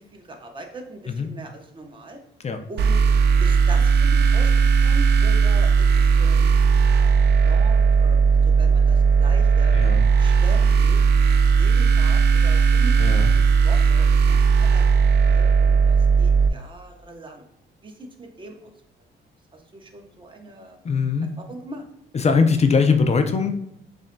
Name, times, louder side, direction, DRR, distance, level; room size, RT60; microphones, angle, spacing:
voice 1, 0.0-2.2 2.7-3.0 3.4-4.5 4.8-6.5 6.9-7.1 7.4-9.8 10.2-11.0 11.6-14.9 15.2-17.4 17.8-18.7 19.5-20.8 21.4-21.8, right 2 dB, 25° right, 2 dB, 0.9 m, -40 dB
sound 1, 2.8-16.5, right 5 dB, 55° right, 0.4 m, -17 dB
voice 2, 9.7-10.0 13.0-13.3 20.8-21.3 22.1-23.6, left 5 dB, 35° left, 7 dB, 0.4 m, -21 dB
6.8 x 2.6 x 2.2 m, 0.80 s
cardioid pair, 90°, 20 cm